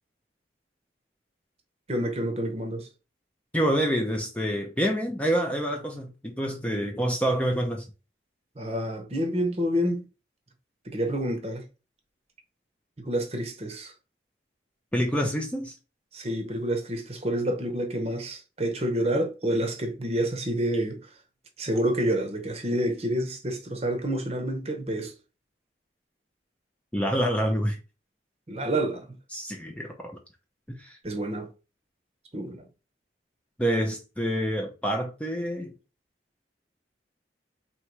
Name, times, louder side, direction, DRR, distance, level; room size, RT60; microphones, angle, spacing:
voice 1, 1.9-2.9 8.6-10.0 10.9-11.6 13.0-13.9 16.1-21.0 21.6-25.1 28.5-29.1 31.0-31.5 32.3-32.7, right 1 dB, 35° right, 0.8 m, -28 dB
voice 2, 3.5-7.8 14.9-15.7 26.9-27.8 29.3-30.1 30.7-31.0 33.6-35.7, equal, 5° left, 0.5 m, -27 dB
3.1 x 3.0 x 4.5 m
head